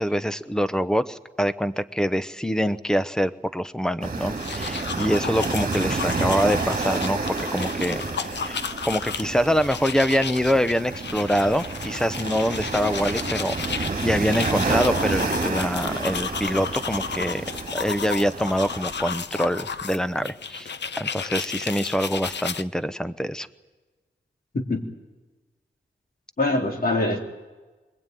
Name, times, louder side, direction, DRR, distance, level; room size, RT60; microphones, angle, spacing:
voice 1, 0.0-7.2 7.5-8.0 8.3-17.4 17.7-23.5, equal, 5° left, 13 dB, 0.8 m, -25 dB
sound 1, 4.0-19.2, right 3 dB, 45° right, 2.2 m, -30 dB
sound 2, 4.2-22.6, left 6 dB, 65° left, 0.7 m, -33 dB
voice 2, 24.5-24.8 26.4-27.2, left 2 dB, 50° left, 2 dB, 3.4 m, -23 dB
24.5 x 21.5 x 9.2 m, 1.2 s
wide cardioid pair, 145°, 19 cm